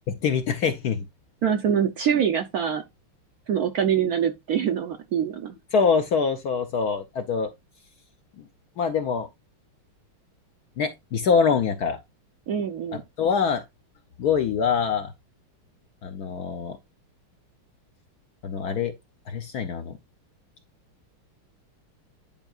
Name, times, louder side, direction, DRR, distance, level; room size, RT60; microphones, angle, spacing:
voice 1, 0.2-1.0 5.7-7.5 8.4-8.5 8.8-9.3 10.8-12.0 13.2-13.6 14.2-15.1 16.0-16.8 18.4-18.9 19.3-20.0, left 6 dB, 70° left, 0.9 m, -24 dB
voice 2, 1.4-2.8 3.5-5.6 12.5-13.0, right 8 dB, 70° right, 0.9 m, -24 dB
10.5 x 4.5 x 2.3 m
omnidirectional pair, 2.3 m